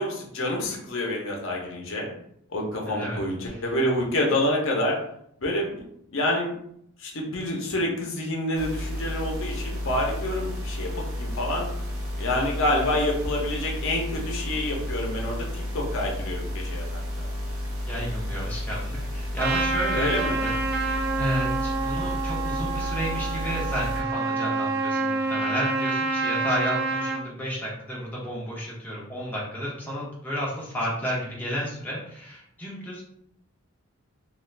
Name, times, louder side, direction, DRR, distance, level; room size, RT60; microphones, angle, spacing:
voice 1, 0.0-2.1 2.5-5.0 5.4-5.8 6.1-6.5 7.0-11.7 12.2-16.9 17.2-17.3 19.9-20.4, left 1 dB, 60° left, -1 dB, 0.7 m, -27 dB
voice 2, 2.9-3.2 3.5-3.6 17.9-33.0, equal, 10° left, -6 dB, 0.5 m, -32 dB
sound 1, 8.5-24.0, left 1 dB, 70° right, 0.7 m, -32 dB
Trumpet, 19.4-27.2, right 3 dB, 45° right, 0.3 m, -27 dB
2.4 x 2.4 x 3.1 m, 0.71 s
head